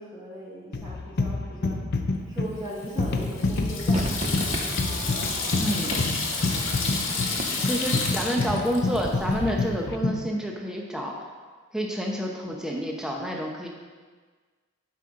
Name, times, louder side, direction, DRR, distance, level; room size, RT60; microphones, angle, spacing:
voice 1, 0.0-1.8 2.3-4.4 6.7-7.0 7.3-7.8, right 1 dB, 20° right, -6 dB, 1.3 m, -39 dB
sound 1, 0.7-10.3, left 3 dB, 50° left, 0.6 m, -28 dB
Water tap faucet / Sink (filling or washing), 2.6-9.4, left 4 dB, 70° left, 1.6 m, -31 dB
Crowd / Fireworks, 3.9-9.3 9.6-9.7, right 2 dB, 35° right, 0.6 m, -37 dB
voice 2, 5.6-6.0 7.6-11.2 11.7-13.7, equal, 5° right, -1 dB, 0.9 m, -29 dB
11.5 x 5.6 x 3.8 m, 1.5 s
head